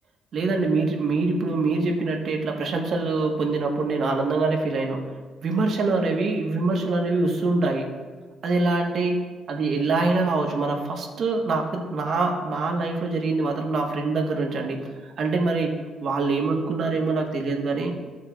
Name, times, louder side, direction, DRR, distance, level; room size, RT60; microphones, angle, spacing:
voice 1, 0.3-5.0 5.4-7.9 8.4-9.2 9.5-14.8 15.2-17.9, right 3 dB, 60° right, 2 dB, 1.4 m, -24 dB
15.0 x 6.4 x 2.4 m, 1.4 s
cardioid pair, 90°, 0 cm